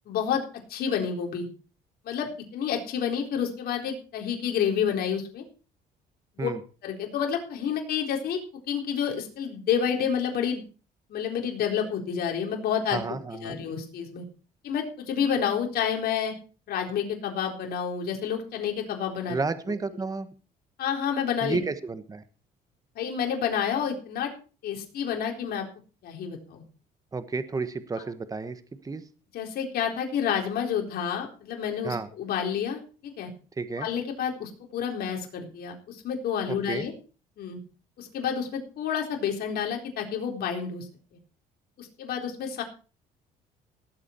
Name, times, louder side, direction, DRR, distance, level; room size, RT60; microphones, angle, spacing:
voice 1, 0.1-0.4 0.7-1.5 2.0-5.4 6.4-6.5 6.8-8.4 8.7-10.6 11.1-14.2 14.6-16.3 16.7-19.4 20.8-21.6 23.0-24.3 24.6-25.6 26.0-26.6 29.3-33.3 33.8-36.9 37.4-37.6 38.0-40.9 41.8-42.6, left 8 dB, 65° left, 2 dB, 4.1 m, -29 dB
voice 2, 12.9-13.6 19.3-20.3 21.4-22.2 27.1-29.0 31.8-32.1 33.6-33.9 36.5-36.8, right 4 dB, 20° right, 11 dB, 1.3 m, -32 dB
18.5 x 8.4 x 4.5 m, 0.36 s
cardioid pair, 110°, 17 cm